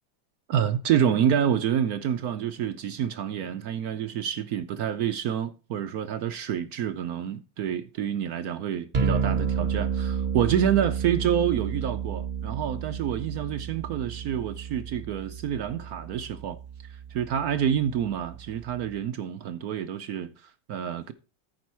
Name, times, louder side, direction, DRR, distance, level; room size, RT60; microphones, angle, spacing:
voice 1, 0.5-16.6 16.9-21.1, right 9 dB, 75° right, 0.8 m, -28 dB
sound 1, 8.9-19.0, right 6 dB, 35° right, 0.8 m, -31 dB
14.0 x 5.1 x 4.4 m
omnidirectional pair, 2.2 m